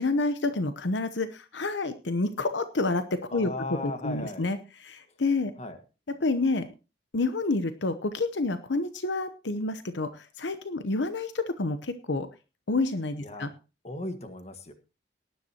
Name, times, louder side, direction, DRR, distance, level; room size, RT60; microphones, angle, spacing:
voice 1, 0.0-3.5 3.8-5.5 6.2-6.7 7.1-12.3 12.7-13.5, left 3 dB, 75° left, 10 dB, 0.9 m, -29 dB
voice 2, 3.3-4.4 5.6-5.8 13.2-13.5 13.8-14.7, left 2 dB, 35° left, 8 dB, 1.7 m, -36 dB
19.0 x 10.5 x 2.9 m, 0.31 s
head